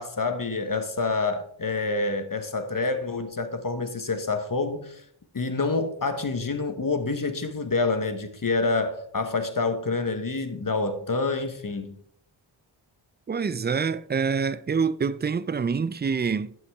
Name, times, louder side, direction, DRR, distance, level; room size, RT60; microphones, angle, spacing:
voice 1, 0.0-5.0 5.3-11.9, left 3 dB, 45° left, 1.1 m, -27 dB
voice 2, 13.3-16.5, right 5 dB, 25° right, 0.4 m, -26 dB
11.0 x 5.7 x 3.5 m
cardioid pair, 40°, 48 cm